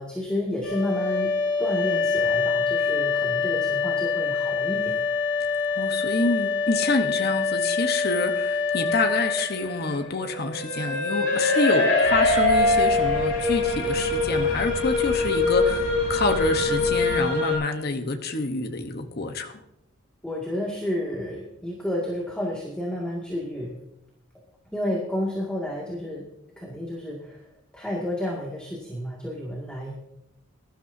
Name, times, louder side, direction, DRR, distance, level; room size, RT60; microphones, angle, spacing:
voice 1, 0.0-5.0 20.2-23.8 24.7-26.2 26.6-27.5 27.7-29.9, left 1 dB, 5° left, -3 dB, 2.1 m, -31 dB
sound 1, 0.6-17.5, left 3 dB, 65° left, 6.3 m, -24 dB
voice 2, 5.8-19.5, left 3 dB, 45° left, 6 dB, 1.1 m, -27 dB
sound 2, 12.0-17.3, equal, 90° left, 5.2 m, -35 dB
21.5 x 12.5 x 2.7 m, 0.82 s
head